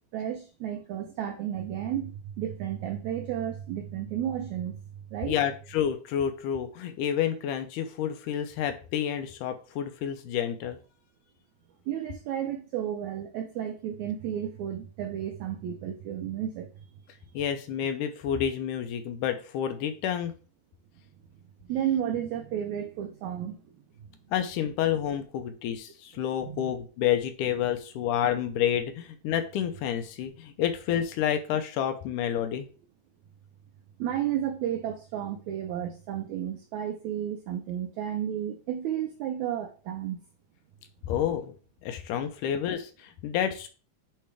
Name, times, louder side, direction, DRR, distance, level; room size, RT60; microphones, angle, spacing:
voice 1, 0.1-4.8 5.1-5.4 11.9-16.7 21.7-23.6 26.4-26.7 34.0-40.2, right 10 dB, 85° right, 1.6 m, -32 dB
voice 2, 5.3-10.8 17.3-20.3 24.3-32.7 41.1-41.5 41.8-43.7, left 9 dB, 80° left, 2.0 m, -29 dB
8.6 x 3.3 x 3.3 m
omnidirectional pair, 4.0 m